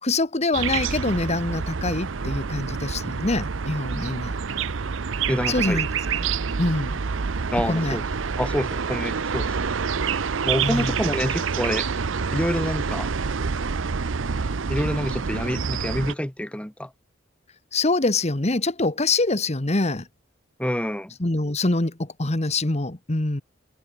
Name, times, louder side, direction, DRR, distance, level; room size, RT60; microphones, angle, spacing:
voice 1, 0.0-4.3 5.5-5.9 6.1-6.2 6.6-7.0 7.7-8.0 10.6-11.0 17.7-20.1 21.2-23.4, left 2 dB, 35° left, 1.5 m, -24 dB
sound 1, 0.5-16.1, right 5 dB, 90° right, 0.7 m, -27 dB
voice 2, 5.3-5.8 7.5-8.0 8.4-9.5 10.4-11.9 12.3-13.1 14.7-16.9 20.6-21.1, equal, 5° left, 1.5 m, -27 dB
head